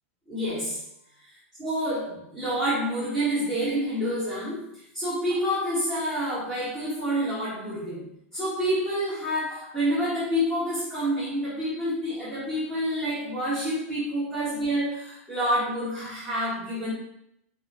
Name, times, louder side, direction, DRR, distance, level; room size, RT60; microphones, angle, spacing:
voice 1, 0.3-0.8 1.2-1.3 1.6-8.1 8.3-16.9, equal, 5° right, -11 dB, 1.1 m, -28 dB
3.7 x 2.3 x 3.6 m, 0.77 s
supercardioid pair, 155°, 8 cm